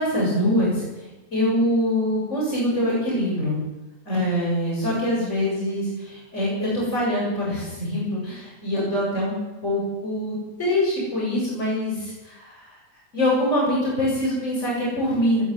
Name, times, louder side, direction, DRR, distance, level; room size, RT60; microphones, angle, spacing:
voice 1, 0.0-3.6 4.0-9.3 9.6-12.8 13.1-15.4, left 1 dB, 50° left, -5 dB, 8.0 m, -24 dB
19.0 x 13.5 x 9.9 m, 1.1 s
omnidirectional pair, 1.6 m